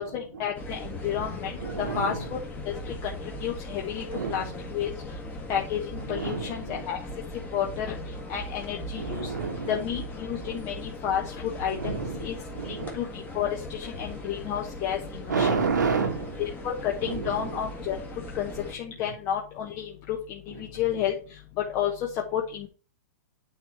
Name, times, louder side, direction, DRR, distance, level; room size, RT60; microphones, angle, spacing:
voice 1, 0.0-1.5 1.9-2.2 2.6-3.1 3.4-4.4 4.7-4.9 5.5-7.0 7.5-8.0 8.3-9.3 9.7-12.4 12.6-15.5 16.4-18.0 18.3-21.1 21.7-21.9 22.3-22.7, left 9 dB, 35° left, 0 dB, 1.1 m, -31 dB
sound 1, 0.5-18.7, left 1 dB, 20° left, 1.5 m, -39 dB
voice 2, 1.6-2.3 4.1-4.5 6.0-6.8 9.0-9.8 10.4-10.6 11.7-12.3 12.5-12.9 15.3-16.4 17.0-17.6, right 5 dB, 90° right, 4 dB, 1.8 m, -30 dB
9.3 x 3.2 x 5.5 m, 0.38 s
hypercardioid pair, 125°, 10 cm